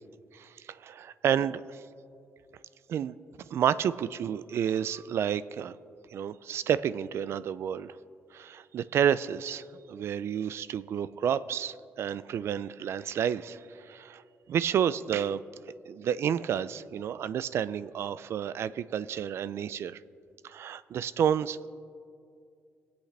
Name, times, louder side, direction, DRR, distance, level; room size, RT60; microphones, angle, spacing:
voice 1, 0.8-1.8 2.9-3.1 3.5-5.8 6.1-8.0 8.3-13.6 13.9-14.2 14.5-15.4 15.9-20.0 20.4-21.7, right 9 dB, 65° right, 16 dB, 0.4 m, -30 dB
24.0 x 8.2 x 3.3 m, 2.4 s
cardioid pair, 100°, 5 cm